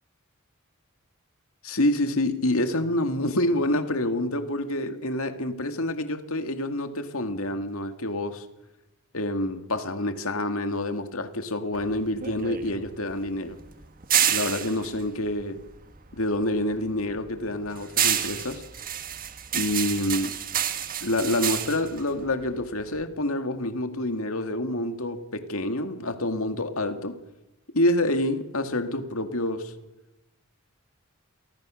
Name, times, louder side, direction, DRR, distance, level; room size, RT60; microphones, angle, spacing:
voice 1, 1.6-8.5 9.1-13.6 14.3-15.6 16.1-18.6 19.5-20.4 21.0-27.2 27.7-29.7, left 1 dB, 70° left, 2.3 m, -27 dB
sound 1, 11.7-16.2 16.6-23.0, right 10 dB, 40° right, 1.6 m, -29 dB
29.0 x 24.0 x 6.5 m
head